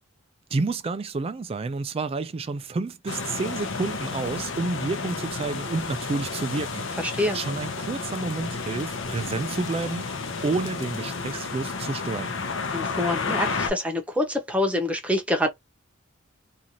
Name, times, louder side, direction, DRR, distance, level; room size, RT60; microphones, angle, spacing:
voice 1, 0.5-6.9 7.3-12.3, right 3 dB, 30° right, 0.3 m, -30 dB
sound 1, 3.1-13.7, left 4 dB, 65° left, 0.7 m, -31 dB
voice 2, 7.0-7.4 12.7-15.5, left 1 dB, 5° right, 0.7 m, -26 dB
2.5 x 2.4 x 2.8 m
head